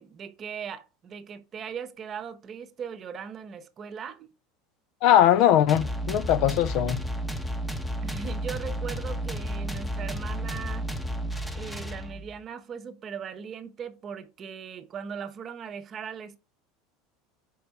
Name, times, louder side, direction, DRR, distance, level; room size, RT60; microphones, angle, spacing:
voice 1, 0.0-4.3 8.0-10.8 11.5-16.4, right 7 dB, 35° right, 0.8 m, -39 dB
voice 2, 5.0-7.0, left 11 dB, 60° left, 0.5 m, -20 dB
sound 1, 5.7-12.4, equal, 10° left, 0.8 m, -32 dB
5.2 x 4.6 x 4.6 m
supercardioid pair, 105°, 0 cm